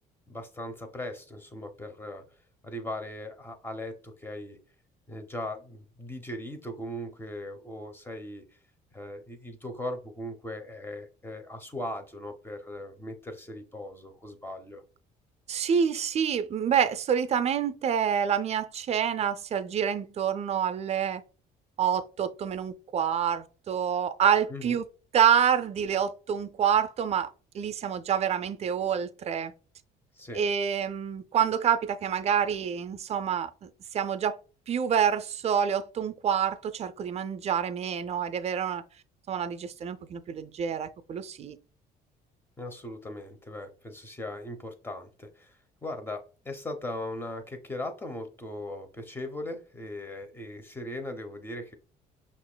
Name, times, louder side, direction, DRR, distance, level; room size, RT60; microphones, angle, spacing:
voice 1, 0.3-2.2 2.6-4.6 5.1-8.5 8.9-14.8 24.5-24.8 30.2-30.5 42.6-51.8, left 1 dB, 15° left, 0.8 m, -39 dB
voice 2, 15.5-21.2 21.8-24.9 25.1-29.5 30.3-34.4 34.7-38.8 39.3-41.6, right 8 dB, 40° right, 0.4 m, -27 dB
5.7 x 2.5 x 2.2 m
cardioid pair, 110°, 17 cm